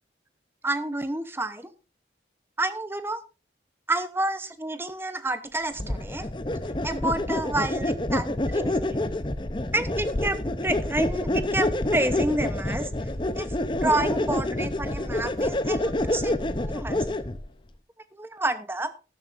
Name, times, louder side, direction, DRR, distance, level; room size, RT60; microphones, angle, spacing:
voice 1, 0.6-1.7 2.6-3.2 3.9-6.3 6.8-8.8 9.7-12.9 13.4-13.6 13.8-16.3 16.6-17.1 18.2-18.9, right 2 dB, 15° right, 11 dB, 0.9 m, -29 dB
sound 1, 5.8-17.4, left 1 dB, 25° left, 0.8 m, -27 dB
13.0 x 13.0 x 2.6 m, 0.32 s
head